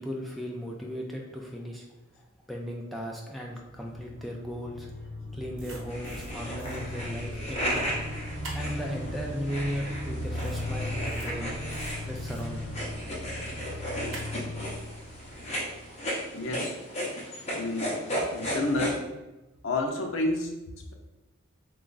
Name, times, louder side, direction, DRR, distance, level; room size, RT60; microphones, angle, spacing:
voice 1, 0.0-1.8 2.2-4.9 5.3-7.9 8.5-11.5 12.0-12.7, equal, ahead, -2 dB, 0.3 m, -36 dB
Horror Transition, 3.3-16.1, left 1 dB, 45° right, 1.0 m, -38 dB
sound 1, 5.5-6.3 6.6-6.8 8.4-8.7 10.4-10.6 11.0-11.3 11.7-12.4 14.1-14.3, right 2 dB, 75° right, 0.9 m, -44 dB
sound 2, 5.9-18.9, equal, 30° left, 0.8 m, -35 dB
voice 2, 16.3-16.8 17.6-17.9 18.3-19.1 19.6-20.5, left 2 dB, 75° left, 2 dB, 0.5 m, -29 dB
3.3 x 2.3 x 3.9 m, 1.0 s
head